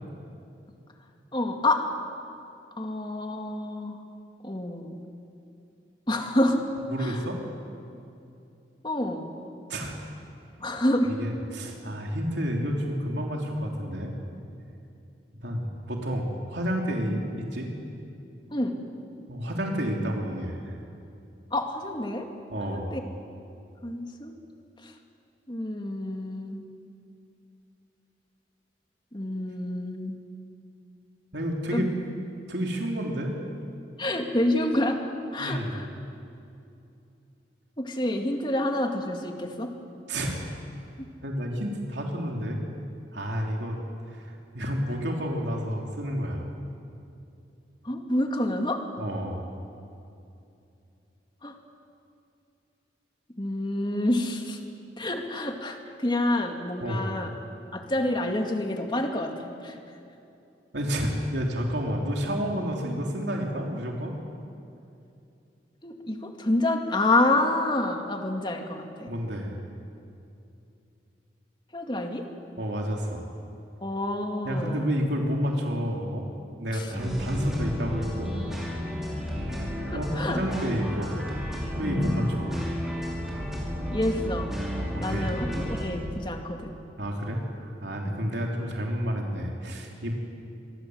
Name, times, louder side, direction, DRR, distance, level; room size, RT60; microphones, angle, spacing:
voice 1, 1.3-1.8 2.8-4.0 4.4-5.0 6.1-6.6 7.0-7.2 8.8-9.3 10.6-11.1 18.5-18.8 21.5-22.3 22.7-23.0 23.8-24.4 24.8-24.9 25.5-26.6 29.1-30.2 31.7-31.8 34.0-35.0 35.3-35.9 37.8-39.7 47.8-48.8 51.4-51.5 53.4-54.6 55.0-57.3 57.7-59.8 65.8-69.1 71.7-72.3 73.8-74.9 76.7-76.9 79.9-80.4 81.8-82.3 83.9-84.5 85.0-86.8 88.0-88.2, left 1 dB, 25° left, 3 dB, 2.2 m, -28 dB
voice 2, 6.9-7.4 9.7-9.9 11.0-14.1 15.4-17.7 19.3-20.7 22.5-23.0 31.3-31.9 32.5-33.3 35.4-35.8 40.1-40.4 41.2-42.6 43.1-43.8 44.1-46.5 49.0-49.4 56.8-57.1 60.7-64.1 69.1-69.5 72.6-73.3 74.4-76.3 76.6-78.4 79.9-81.2 81.8-82.6 84.9-85.3 87.0-90.1, equal, 75° right, 0 dB, 3.2 m, -30 dB
sound 1, 76.9-85.8, equal, ahead, 4.8 m, -32 dB
25.5 x 22.0 x 7.9 m, 2.7 s
head